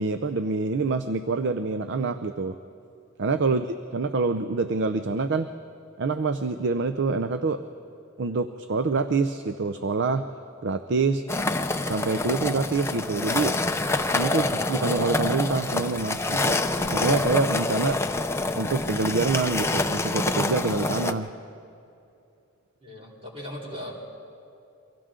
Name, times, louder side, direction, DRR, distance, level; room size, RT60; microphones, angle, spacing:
voice 1, 0.0-2.6 3.2-3.6 3.9-5.5 6.0-7.6 8.2-10.3 10.6-11.2 11.9-13.6 14.1-18.0 18.5-21.3, right 4 dB, 60° right, 10 dB, 0.6 m, -26 dB
sound 1, 11.3-21.1, left 2 dB, 15° left, 0.6 m, -26 dB
voice 2, 22.8-23.9, left 1 dB, 30° right, -4 dB, 4.0 m, -38 dB
29.0 x 24.0 x 3.8 m, 2.6 s
head